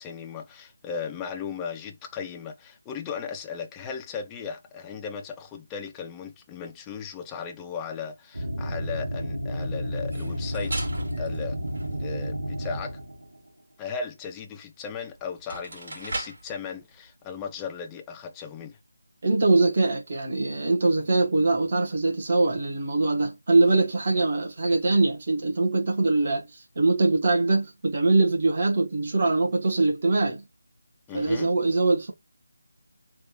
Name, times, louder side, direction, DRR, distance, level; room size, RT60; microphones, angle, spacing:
voice 1, 0.0-10.9 11.2-11.6 11.9-13.0 13.8-18.8 31.1-31.5, left 6 dB, 10° left, 0.4 m, -36 dB
sound 1, 8.3-13.4, equal, 90° right, 1.2 m, -31 dB
sound 2, 10.0-12.4 14.8-14.9 15.3-16.5, right 2 dB, 55° right, 1.8 m, -37 dB
voice 2, 19.2-30.4 31.1-32.1, right 3 dB, 40° right, 1.1 m, -23 dB
3.4 x 2.3 x 3.0 m
figure-of-eight pair, 170°, 0 cm